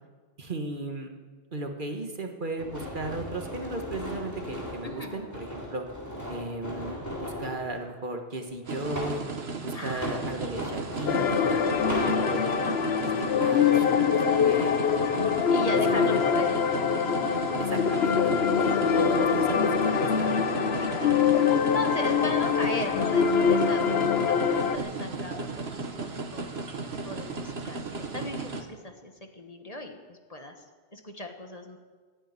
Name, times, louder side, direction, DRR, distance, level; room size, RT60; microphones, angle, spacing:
voice 1, 0.4-1.1 1.5-5.9 6.3-9.2 9.6-11.7 12.0-15.3 15.9-16.5 17.6-18.3 18.6-20.4, right 2 dB, 55° right, 4 dB, 1.7 m, -36 dB
sound 1, 2.6-7.6 8.4-9.3 9.9-12.2, equal, 15° left, 4.0 m, -37 dB
voice 2, 4.8-5.2 9.7-10.6 15.5-16.6 16.9-18.5 20.7-21.3 21.6-26.5 26.9-30.6 30.9-31.8, left 1 dB, 40° left, 4 dB, 1.5 m, -37 dB
sound 2, 8.7-28.6, right 4 dB, 90° right, 1.7 m, -36 dB
sound 3, 11.1-24.8, left 7 dB, 80° left, 1.1 m, -24 dB
16.0 x 9.1 x 9.6 m, 1.4 s
omnidirectional pair, 1.0 m